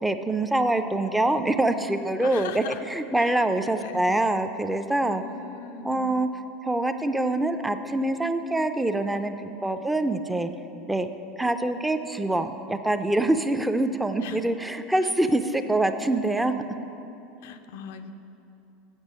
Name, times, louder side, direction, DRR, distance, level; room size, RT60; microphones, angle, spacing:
voice 1, 0.0-5.2 5.8-6.3 6.6-10.5 10.9-11.1 11.4-16.5, right 2 dB, 5° right, 8 dB, 0.4 m, -25 dB
voice 2, 2.2-2.8 3.1-3.5 3.8-4.1 5.1-6.1 14.2-14.4 15.0-15.1 17.4-18.2, left 7 dB, 65° left, 8 dB, 0.4 m, -40 dB
7.9 x 6.1 x 5.4 m, 2.8 s
figure-of-eight pair, 80°, 0 cm